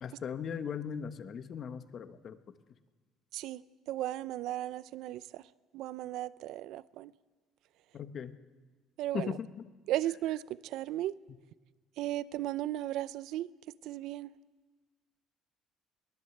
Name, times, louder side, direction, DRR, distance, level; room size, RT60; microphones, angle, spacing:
voice 1, 0.0-2.4 7.9-8.3 9.1-9.6, left 7 dB, 40° left, 10 dB, 1.1 m, -38 dB
voice 2, 3.3-5.4 5.7-7.1 9.0-9.4 9.9-11.1 12.0-13.5 13.8-14.3, right 14 dB, 70° right, 17 dB, 0.6 m, -36 dB
22.0 x 19.0 x 8.0 m, 1.4 s
cardioid pair, 145°, 0 cm